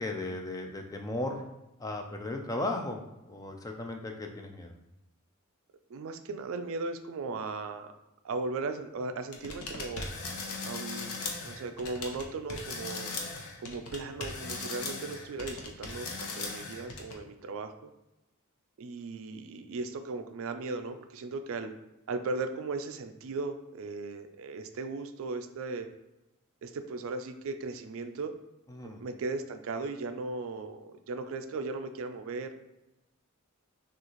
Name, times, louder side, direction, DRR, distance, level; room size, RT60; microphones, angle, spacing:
voice 1, 0.0-1.4 1.8-4.7 28.7-29.0, left 2 dB, 15° left, 3 dB, 0.3 m, -36 dB
voice 2, 5.9-7.9 8.2-10.0 10.6-11.1 11.4-13.1 13.6-17.9 18.8-21.7 22.1-25.9 26.6-28.3 28.8-32.5, right 3 dB, 60° right, 8 dB, 0.3 m, -37 dB
sound 1, 9.3-12.2 12.5-17.1, left 3 dB, 90° left, 0.7 m, -38 dB
6.2 x 2.4 x 3.0 m, 0.94 s
head